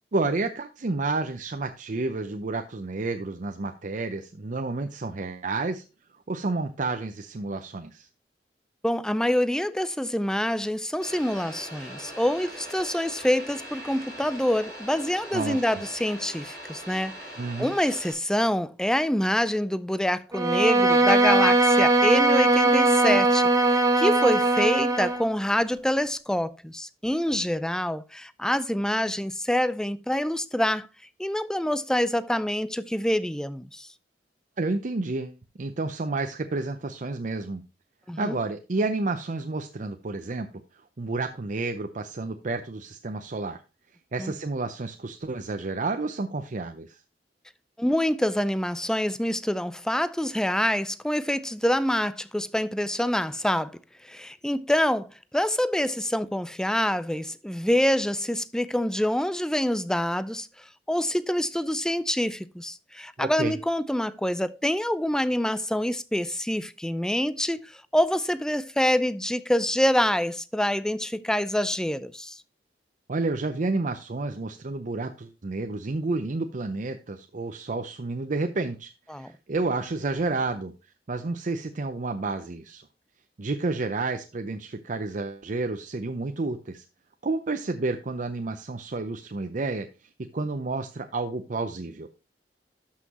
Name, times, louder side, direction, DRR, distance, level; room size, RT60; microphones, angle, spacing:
voice 1, 0.1-5.8 6.3-8.1 15.3-15.8 17.4-17.7 34.6-37.6 38.2-40.5 41.0-43.6 44.1-47.0 63.2-63.6 73.1-80.7 81.1-82.8 83.4-86.8 87.2-89.9 90.3-92.1, right 3 dB, 45° right, 0.6 m, -30 dB
voice 2, 8.8-17.1 17.6-30.9 31.2-33.9 38.1-38.4 44.2-44.3 47.8-55.1 55.3-60.5 60.9-72.4 79.1-79.3, left 1 dB, 5° left, 0.4 m, -26 dB
sound 1, 11.0-18.1, equal, 20° left, 4.3 m, -41 dB
Bowed string instrument, 20.3-25.3, right 2 dB, 20° right, 1.0 m, -20 dB
12.5 x 5.7 x 2.9 m
head